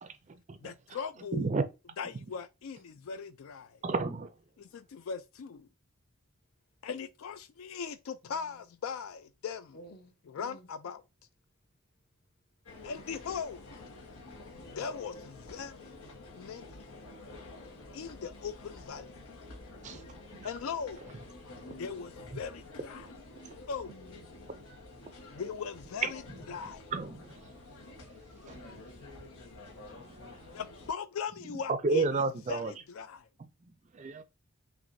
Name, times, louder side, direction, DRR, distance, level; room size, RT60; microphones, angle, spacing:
voice 1, 0.6-1.5 2.0-3.8 4.6-5.7 6.8-9.8 10.3-11.0 12.8-13.7 14.7-16.0 16.3-16.8 17.9-19.1 20.4-21.0 21.8-23.1 23.7-23.9 25.3-26.8 30.5-33.2, left 6 dB, 70° left, 0.4 m, -39 dB
voice 2, 1.3-1.6 3.8-4.3 19.8-20.0 20.4-20.5 26.0-26.1 26.9-27.2 28.5-28.6 31.8-32.7 33.9-34.2, right 3 dB, 35° right, 0.4 m, -30 dB
voice 3, 8.2-8.7 9.7-10.7 19.9-20.4 23.9-24.3, equal, 45° left, 0.8 m, -54 dB
sound 1, 12.6-30.9, left 2 dB, 85° left, 1.3 m, -49 dB
5.9 x 2.5 x 2.6 m
head